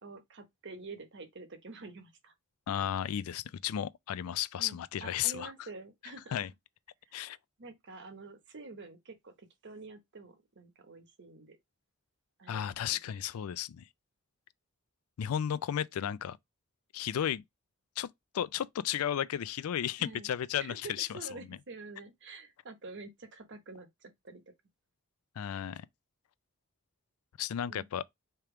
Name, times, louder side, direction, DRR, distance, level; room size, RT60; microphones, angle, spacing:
voice 1, 0.0-2.3 4.6-6.4 7.1-7.2 7.6-11.6 12.4-13.0 20.0-20.3 20.6-24.5 27.7-27.9, right 3 dB, 55° right, 1.0 m, -48 dB
voice 2, 2.7-5.5 6.3-6.5 7.1-7.4 12.5-13.9 15.2-16.4 16.9-17.4 18.0-18.1 18.3-21.6 25.4-25.9 27.4-28.0, left 10 dB, 85° left, 0.4 m, -34 dB
3.4 x 2.9 x 4.8 m
head